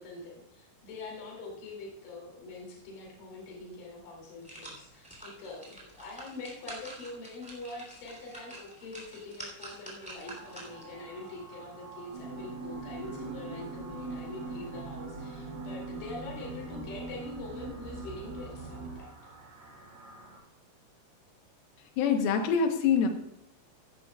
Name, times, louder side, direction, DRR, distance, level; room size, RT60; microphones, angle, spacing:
voice 1, 0.0-19.1, left 2 dB, 50° left, -2 dB, 4.0 m, -44 dB
sound 1, 3.5-3.6 4.1-11.0 11.4-11.5, right 1 dB, 5° right, 1.7 m, -47 dB
sound 2, 10.3-20.4, right 3 dB, 60° right, 3.9 m, -51 dB
sound 3, 12.1-19.0, right 3 dB, 80° right, 5.6 m, -41 dB
voice 2, 22.0-23.1, left 6 dB, 70° left, 5 dB, 2.5 m, -25 dB
15.5 x 10.5 x 2.3 m, 0.73 s
omnidirectional pair, 5.2 m